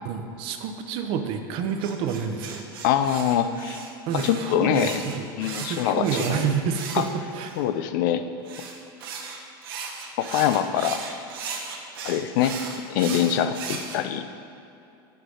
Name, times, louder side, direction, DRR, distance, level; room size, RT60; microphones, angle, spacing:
voice 1, 0.0-2.6 4.1-5.3 5.5-7.5, right 7 dB, 45° right, 6 dB, 0.6 m, -29 dB
sound 1, 1.8-7.6 8.4-14.0, right 5 dB, 85° right, 1.0 m, -36 dB
voice 2, 2.8-3.8 4.1-5.0 5.4-6.5 6.9-7.0 7.6-8.3 10.2-11.0 12.0-12.6 12.9-14.2, left 10 dB, 65° left, 10 dB, 0.4 m, -24 dB
5.8 x 5.3 x 6.4 m, 2.7 s
supercardioid pair, 140°, 12 cm